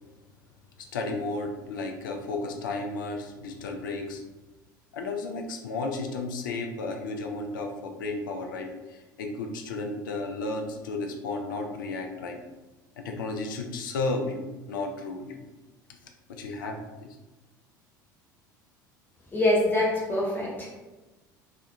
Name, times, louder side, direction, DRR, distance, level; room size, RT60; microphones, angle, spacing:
voice 1, 0.8-4.2 4.9-12.4 13.0-15.4 16.3-17.1, left 3 dB, 75° left, 4 dB, 0.4 m, -33 dB
voice 2, 19.3-20.8, left 1 dB, 20° left, -4 dB, 1.0 m, -25 dB
2.3 x 2.1 x 2.7 m, 1.1 s
figure-of-eight pair, 65°, 11 cm